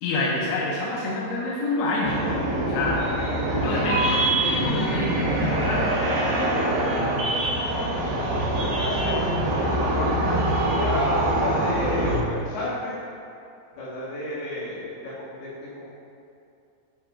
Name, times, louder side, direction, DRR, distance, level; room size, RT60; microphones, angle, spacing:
voice 1, 0.0-3.1 3.6-5.9, left 2 dB, 80° left, -5 dB, 2.6 m, -27 dB
sound 1, 2.0-12.2, right 1 dB, 70° right, 3.1 m, -24 dB
voice 2, 6.5-10.1 10.7-13.0 13.8-15.8, left 1 dB, 60° left, -9 dB, 3.4 m, -33 dB
8.7 x 6.8 x 2.3 m, 2.5 s
omnidirectional pair, 5.6 m